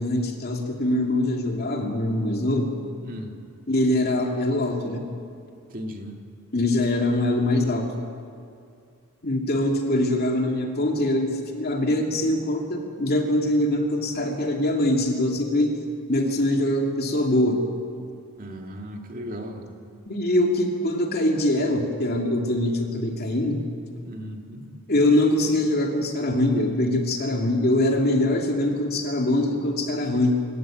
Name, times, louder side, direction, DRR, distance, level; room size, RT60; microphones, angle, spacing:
voice 1, 0.0-2.7 3.7-5.0 6.5-7.9 9.2-15.8 16.1-17.7 20.1-23.7 24.9-30.4, left 1 dB, 45° left, 2 dB, 2.6 m, -23 dB
voice 2, 3.0-3.4 5.7-6.2 18.4-19.7 24.0-24.7, equal, 40° right, 3 dB, 2.2 m, -36 dB
26.0 x 14.0 x 9.1 m, 2.3 s
head